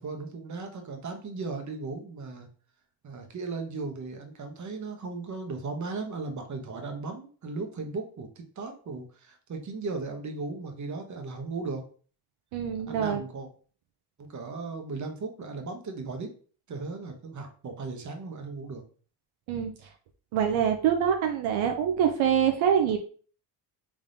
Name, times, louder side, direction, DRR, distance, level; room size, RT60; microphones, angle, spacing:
voice 1, 0.0-2.5 3.0-11.8 12.9-13.5 14.2-16.3 16.7-18.8, right 3 dB, 35° right, 4 dB, 1.0 m, -36 dB
voice 2, 12.5-13.2 19.5-19.7 20.3-23.0, right 8 dB, 70° right, 4 dB, 0.6 m, -25 dB
3.6 x 3.5 x 2.6 m, 0.41 s
cardioid pair, 85°, 49 cm